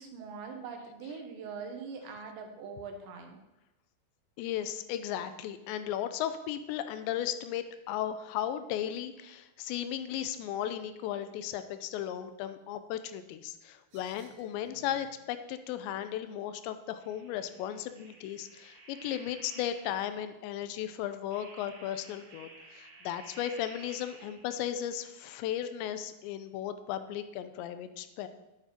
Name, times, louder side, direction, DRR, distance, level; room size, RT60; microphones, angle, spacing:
voice 1, 0.0-3.4, right 5 dB, 80° right, 4 dB, 3.6 m, -42 dB
voice 2, 4.4-28.3, left 10 dB, 85° left, 11 dB, 2.9 m, -36 dB
sound 1, 13.9-15.2 17.0-20.3 21.3-24.7, right 3 dB, 55° right, 3.0 m, -53 dB
10.5 x 9.1 x 4.4 m, 0.98 s
omnidirectional pair, 5.1 m